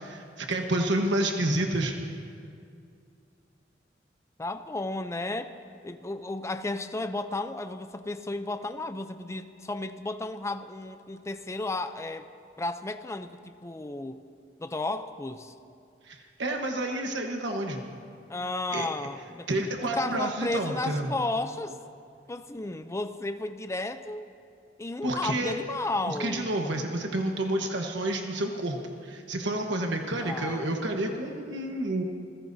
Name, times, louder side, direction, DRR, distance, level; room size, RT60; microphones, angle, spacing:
voice 1, 0.0-1.9 16.1-17.8 18.7-18.9 19.5-21.1 25.0-25.5 26.1-32.0, right 1 dB, 85° right, 2 dB, 1.2 m, -29 dB
voice 2, 4.4-5.5 5.8-12.3 12.6-14.2 14.6-15.5 18.3-19.5 19.8-21.8 22.3-24.3 24.8-26.5 30.2-30.7, left 2 dB, 15° left, 10 dB, 0.4 m, -33 dB
27.5 x 16.0 x 2.7 m, 2.4 s
head